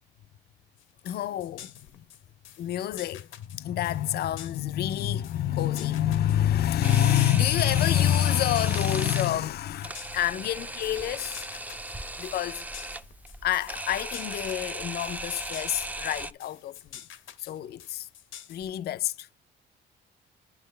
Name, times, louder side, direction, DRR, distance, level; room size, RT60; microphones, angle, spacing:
sound 1, 0.8-18.9, left 10 dB, 80° left, 0.8 m, -48 dB
voice 1, 1.0-2.1 2.6-11.5 12.2-12.7 13.4-17.0 17.4-18.1 18.5-19.3, left 11 dB, 55° left, 0.4 m, -27 dB
Camera, 6.8-16.3, right 1 dB, 10° right, 0.5 m, -37 dB
11.5 x 5.1 x 3.2 m
cardioid pair, 90°, 20 cm